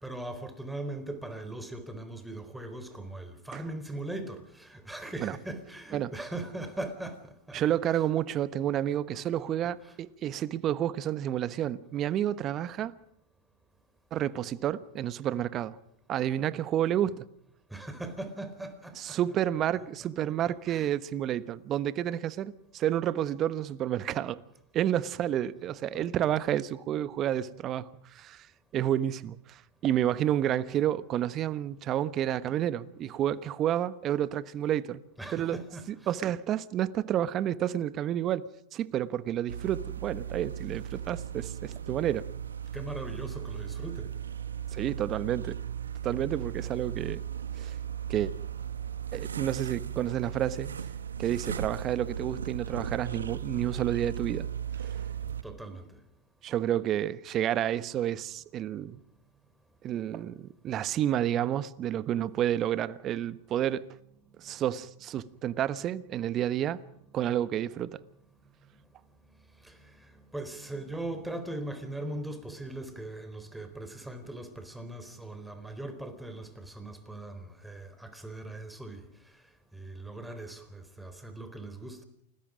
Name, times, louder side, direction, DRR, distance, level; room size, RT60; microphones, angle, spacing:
voice 1, 0.0-8.2 9.4-10.0 17.7-19.4 19.7-20.9 25.9-26.3 35.2-36.2 42.7-44.1 55.2-56.0 64.5-64.7 67.0-67.1 68.7-79.4 79.7-82.0, right 2 dB, 5° right, 4.1 m, -40 dB
voice 2, 7.5-12.9 14.1-15.8 16.1-17.2 19.0-24.4 24.7-28.5 28.7-35.0 35.3-35.6 35.9-42.2 44.7-45.6 46.0-47.2 47.6-47.8 48.1-48.3 49.1-50.7 51.2-54.5 54.8-54.9 56.4-59.0 59.8-63.8 64.4-66.8 67.1-68.0, right 11 dB, 35° right, 1.2 m, -30 dB
sound 1, 39.5-55.4, right 9 dB, 90° right, 1.4 m, -37 dB
28.5 x 20.5 x 5.2 m
hypercardioid pair, 105°, 0 cm